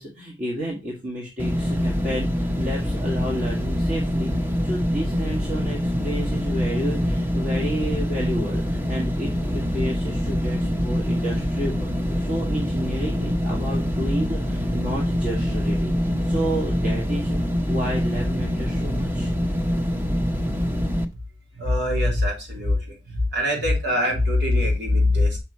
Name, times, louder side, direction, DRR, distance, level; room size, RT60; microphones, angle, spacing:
voice 1, 0.0-17.4 17.7-19.3, equal, 45° right, -3 dB, 2.0 m, -31 dB
sound 1, 1.4-21.1, equal, 10° right, 0.7 m, -25 dB
voice 2, 21.6-22.8 23.1-25.4, left 1 dB, 70° right, 0 dB, 3.0 m, -22 dB
6.2 x 6.0 x 4.2 m, 0.26 s
head